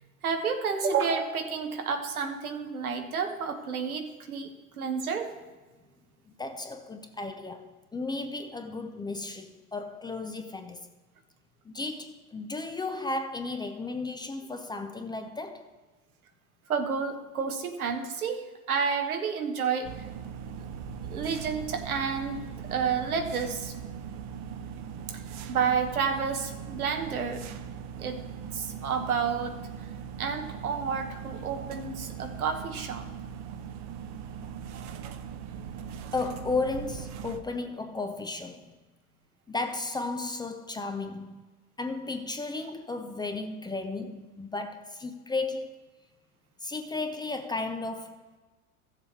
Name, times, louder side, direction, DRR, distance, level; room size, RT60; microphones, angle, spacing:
voice 1, 0.2-4.5 4.8-5.3 16.7-19.9 20.6-20.7 21.0-22.4 22.7-23.7 25.5-27.4 28.0-28.2 28.5-29.6 30.2-33.1, right 6 dB, 80° right, 1.3 m, -30 dB
voice 2, 6.4-10.9 11.6-15.7 36.1-38.8 39.5-41.5 41.8-45.7 46.6-48.2, left 3 dB, 10° left, 0.5 m, -34 dB
sound 1, 19.8-37.4, right 7 dB, 40° right, 0.7 m, -40 dB
15.0 x 7.3 x 3.2 m
hypercardioid pair, 85°, 42 cm